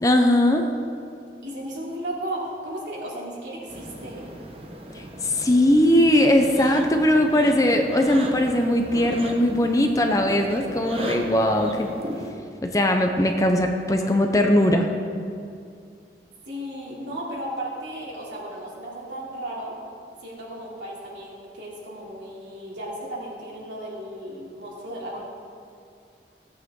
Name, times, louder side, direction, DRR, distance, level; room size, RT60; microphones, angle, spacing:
voice 1, 0.0-0.7 5.2-11.9 12.6-14.9, left 1 dB, 20° left, 3 dB, 0.7 m, -20 dB
voice 2, 1.4-4.3 16.5-19.8 20.2-25.2, right 1 dB, 75° right, -5 dB, 3.2 m, -35 dB
sound 1, 3.7-12.3, right 1 dB, 30° right, 1.0 m, -36 dB
17.0 x 8.6 x 3.8 m, 2.3 s
head